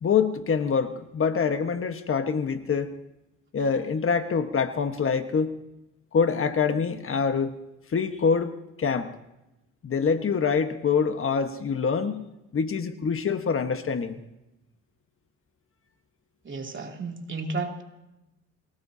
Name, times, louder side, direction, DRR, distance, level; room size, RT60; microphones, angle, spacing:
voice 1, 0.0-2.9 3.5-5.5 6.1-7.5 7.9-8.5 8.8-9.1 9.8-12.2 12.5-14.2, left 6 dB, 45° left, 8 dB, 1.4 m, -25 dB
voice 2, 16.4-17.8, right 3 dB, 40° right, 1 dB, 3.0 m, -33 dB
27.5 x 18.5 x 2.8 m, 0.93 s
cardioid pair, 90°, 30 cm